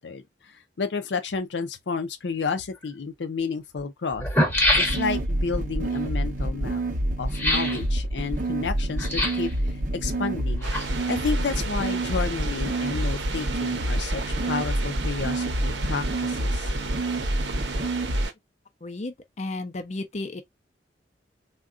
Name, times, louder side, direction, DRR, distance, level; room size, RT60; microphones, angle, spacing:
voice 1, 0.0-4.3 4.8-6.8 7.2-10.7 11.1-16.7, left 4 dB, 90° left, 0.5 m, -31 dB
sound 1, 2.8-2.9 3.8-3.9 4.1-5.4 7.3-7.8 9.0-9.5 10.4-11.2 11.5-11.6, left 1 dB, 15° left, 0.8 m, -25 dB
sound 2, 4.5-18.2, right 1 dB, 45° right, 0.7 m, -27 dB
sound 3, 10.6-18.3, right 4 dB, 90° right, 0.7 m, -36 dB
voice 2, 18.8-20.4, left 2 dB, 40° left, 0.5 m, -33 dB
3.6 x 2.3 x 2.4 m
head